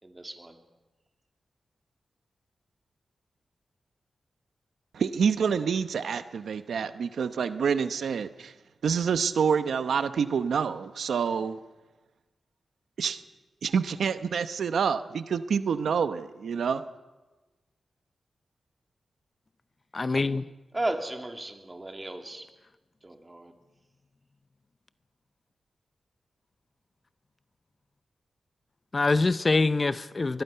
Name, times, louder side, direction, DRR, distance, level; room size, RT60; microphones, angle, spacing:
voice 1, 0.0-0.6 20.7-22.5 23.0-23.5, right 1 dB, 20° right, 4 dB, 2.6 m, -35 dB
voice 2, 4.9-8.5 8.8-11.6 13.0-13.2 13.6-16.8, right 6 dB, 85° right, 11 dB, 0.9 m, -27 dB
voice 3, 19.9-20.4 28.9-30.4, left 3 dB, 35° left, 14 dB, 0.6 m, -24 dB
23.0 x 21.0 x 5.7 m, 1.2 s
wide cardioid pair, 90°, 0 cm